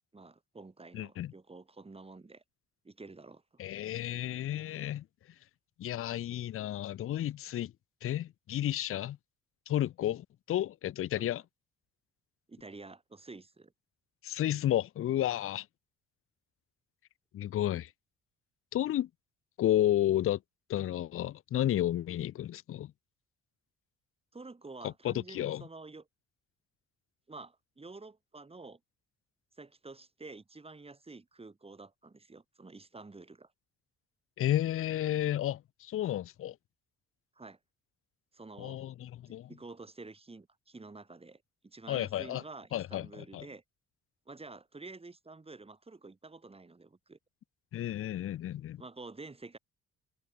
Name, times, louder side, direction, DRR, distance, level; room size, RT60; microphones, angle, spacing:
voice 1, 0.1-2.4 2.8-3.6 11.2-11.3 12.5-13.7 24.3-26.1 27.3-28.8 29.6-33.5 37.4-37.6 38.3-38.8 39.3-43.6 44.3-47.2 48.8-49.6, right 3 dB, 20° right, 2.2 m, -49 dB
voice 2, 0.9-1.3 3.6-5.0 5.8-7.7 8.0-9.2 9.7-11.4 14.2-15.7 17.3-17.9 18.7-19.1 19.6-20.4 20.7-22.9 24.8-25.6 34.4-36.5 38.6-39.5 41.9-42.4 42.7-43.5 47.7-48.8, left 12 dB, 45° left, 0.5 m, -32 dB
cardioid pair, 90°, 30 cm